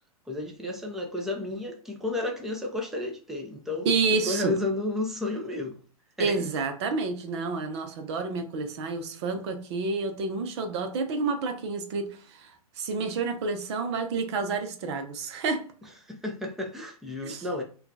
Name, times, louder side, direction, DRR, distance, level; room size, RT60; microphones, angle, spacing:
voice 1, 0.3-5.8 6.2-6.5 16.0-17.6, left 2 dB, ahead, 0.6 m, -32 dB
voice 2, 3.8-4.6 6.2-12.5 12.8-15.7 17.2-17.4, right 4 dB, 45° right, 0.8 m, -29 dB
5.7 x 2.4 x 2.7 m
figure-of-eight pair, 110°, 19 cm